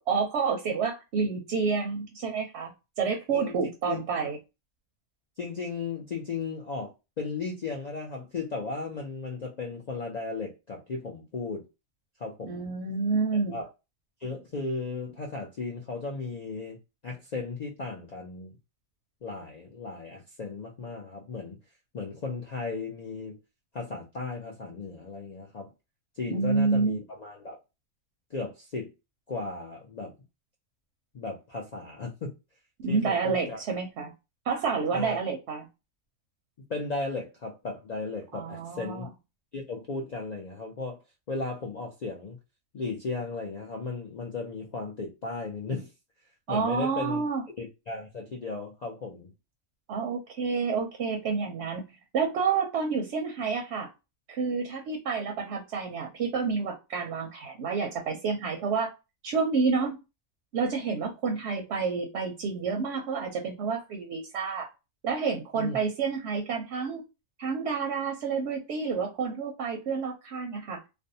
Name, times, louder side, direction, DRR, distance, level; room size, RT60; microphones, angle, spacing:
voice 1, 0.0-2.7 3.0-4.4 12.4-13.6 26.3-27.0 32.8-34.1 34.5-35.7 38.3-39.1 46.5-47.4 49.9-51.8 52.1-53.9 54.3-58.9 59.2-60.0 60.5-64.7 65.0-67.0 67.4-70.8, right 5 dB, 65° right, 0.8 m, -29 dB
voice 2, 3.9-4.3 5.4-11.6 12.2-12.7 13.3-13.7 14.2-16.8 17.0-18.5 19.2-21.6 21.9-23.4 23.7-25.7 26.1-27.6 28.3-28.9 29.3-30.1 31.1-32.3 32.9-33.6 34.9-35.2 36.7-39.1 39.5-41.0 41.3-42.4 42.7-45.9 46.5-47.2 47.6-49.3 65.5-65.8, left 3 dB, 75° left, 0.3 m, -35 dB
2.5 x 2.1 x 2.6 m
omnidirectional pair, 1.4 m